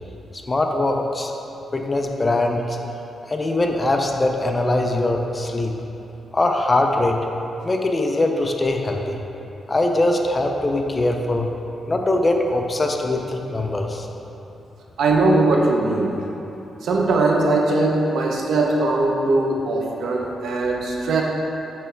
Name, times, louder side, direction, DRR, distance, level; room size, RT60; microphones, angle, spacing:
voice 1, 0.5-1.3 1.7-2.8 3.2-5.7 6.3-7.2 7.6-9.2 9.7-11.5 11.9-14.1, left 2 dB, 25° left, 3 dB, 0.5 m, -22 dB
voice 2, 15.0-16.1 16.8-21.2, right 2 dB, 75° right, 0 dB, 0.8 m, -20 dB
8.6 x 3.3 x 4.6 m, 3.0 s
cardioid pair, 125°, 0 cm